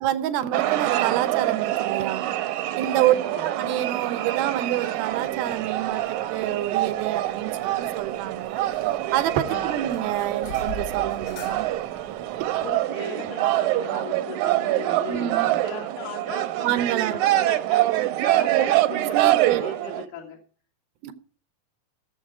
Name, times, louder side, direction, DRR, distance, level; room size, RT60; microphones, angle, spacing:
voice 1, 0.0-2.2 2.8-3.2 3.4-8.6 9.1-11.7 15.1-15.6 16.6-17.2 19.1-19.8 21.0-21.1, right 13 dB, 90° right, 2.8 m, -27 dB
sound 1, 0.5-20.1, right 15 dB, 75° right, 1.9 m, -25 dB
voice 2, 3.0-3.5 9.5-9.8 12.6-16.7 17.1-17.9 18.2-20.4, left 4 dB, 65° left, 3.5 m, -38 dB
sound 2, 5.1-12.8, left 4 dB, 50° left, 2.0 m, -44 dB
17.0 x 7.4 x 4.7 m
omnidirectional pair, 4.2 m